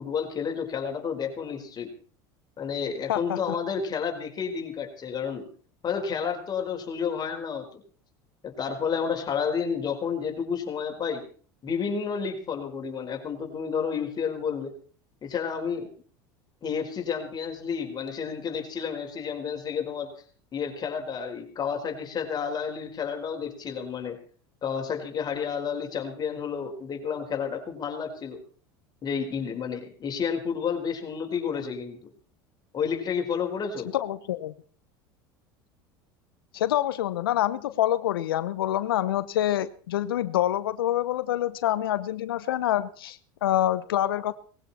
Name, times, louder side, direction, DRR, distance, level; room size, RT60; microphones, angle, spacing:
voice 1, 0.0-1.9 2.6-5.5 5.8-7.8 8.4-11.3 11.6-14.7 15.2-15.9 16.6-20.1 20.5-24.2 24.6-28.4 29.0-32.1 32.7-33.9, left 6 dB, 35° left, 3 dB, 4.9 m, -31 dB
voice 2, 33.9-34.5 36.5-44.3, left 12 dB, 90° left, 14 dB, 0.9 m, -26 dB
20.0 x 15.5 x 4.4 m, 0.43 s
hypercardioid pair, 95°, 12 cm